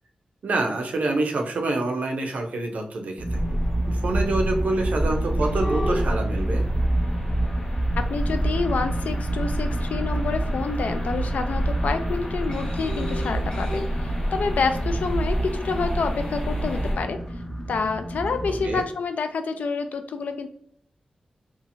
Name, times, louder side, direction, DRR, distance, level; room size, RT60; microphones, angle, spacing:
voice 1, 0.4-3.6 3.9-6.6 18.6-18.8, right 2 dB, 80° right, 3 dB, 0.5 m, -26 dB
sound 1, 3.2-18.8, right 1 dB, 25° left, 0.5 m, -29 dB
sound 2, 3.3-17.0, right 1 dB, 50° left, 0.9 m, -28 dB
voice 2, 8.0-17.2 17.7-20.5, left 4 dB, 85° left, 7 dB, 0.3 m, -28 dB
2.7 x 2.4 x 2.6 m, 0.64 s
wide cardioid pair, 140°, 3 cm